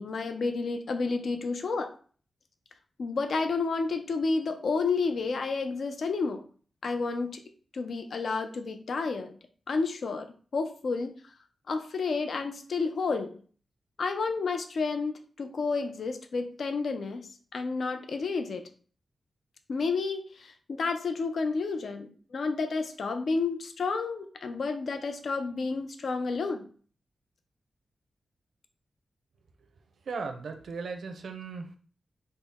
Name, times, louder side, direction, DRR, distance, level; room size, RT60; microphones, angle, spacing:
voice 1, 0.0-1.9 3.0-6.4 6.8-7.4 7.7-9.3 9.7-11.1 11.7-13.4 14.0-18.7 19.7-26.7, left 4 dB, 65° left, 7 dB, 0.4 m, -30 dB
voice 2, 30.0-31.8, right 4 dB, 75° right, 5 dB, 0.5 m, -37 dB
4.0 x 2.0 x 3.5 m, 0.42 s
wide cardioid pair, 130°, 0 cm